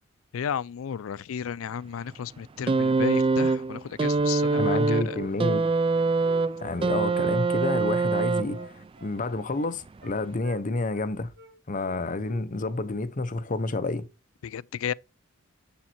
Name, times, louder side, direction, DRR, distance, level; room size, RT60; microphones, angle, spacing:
voice 1, 0.3-5.2 14.4-14.9, left 8 dB, 85° left, 0.4 m, -33 dB
sound 1, 2.7-8.8 9.9-10.0, right 3 dB, 25° right, 0.4 m, -24 dB
voice 2, 4.5-5.6 6.6-11.3 11.7-14.1, left 2 dB, 40° left, 0.8 m, -29 dB
Wind instrument woodwind instrument, 6.2-7.8 8.1-9.2 9.5-10.2 10.4-11.1 11.3-11.5 11.8-12.5 12.7-12.9, right 2 dB, 60° right, 1.9 m, -50 dB
7.3 x 7.2 x 4.4 m
head